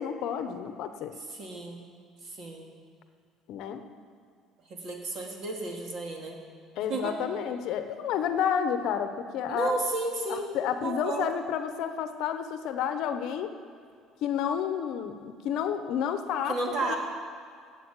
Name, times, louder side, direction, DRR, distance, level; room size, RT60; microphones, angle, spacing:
voice 1, 0.0-1.2 3.5-3.8 6.8-9.7 10.3-13.5 14.2-16.6 16.8-16.9, left 8 dB, 60° left, 8 dB, 0.9 m, -30 dB
voice 2, 1.3-1.8 2.2-2.7 4.7-6.4 6.9-7.2 9.5-10.5 10.8-11.3 16.5-17.0, right 2 dB, 45° right, 1 dB, 2.2 m, -32 dB
12.5 x 8.1 x 8.3 m, 2.2 s
cardioid pair, 155°, 0 cm